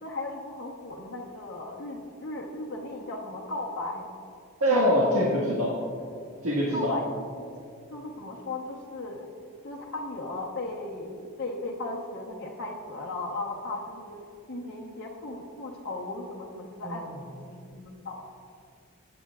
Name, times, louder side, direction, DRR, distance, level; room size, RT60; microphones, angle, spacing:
voice 1, 0.0-4.1 6.7-7.0 7.3-7.5 7.9-9.3 9.6-14.2 14.5-18.2, left 2 dB, 50° left, -4 dB, 1.1 m, -36 dB
voice 2, 4.6-5.8 6.4-7.0 16.8-17.1, equal, 85° right, -4 dB, 1.7 m, -24 dB
19.0 x 8.9 x 2.4 m, 2.4 s
head